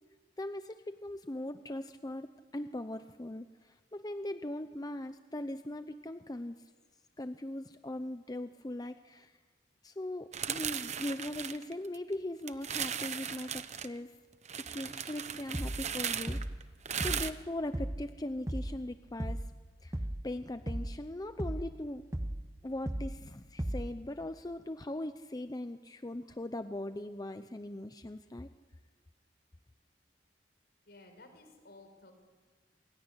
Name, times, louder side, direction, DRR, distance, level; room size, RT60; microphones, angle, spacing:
voice 1, 0.4-6.6 7.2-9.3 9.8-14.1 14.6-16.4 17.0-19.4 19.8-20.0 20.2-22.0 22.6-28.5, left 1 dB, 20° left, 9 dB, 0.7 m, -40 dB
sound 1, 10.3-12.1 12.5-13.9 14.5-17.3, right 8 dB, 40° right, 1.0 m, -37 dB
sound 2, 15.5-15.9 16.3-16.6 17.0-17.4 17.7-18.1 18.5-18.8 19.2-19.6 19.9-20.3 20.7-21.0 21.4-21.8 22.1-22.5 22.9-23.2 23.6-24.0, right 1 dB, 15° right, 0.9 m, -36 dB
voice 2, 30.9-32.1, left 2 dB, 65° left, 6 dB, 5.9 m, -55 dB
27.5 x 21.0 x 9.9 m, 1.4 s
head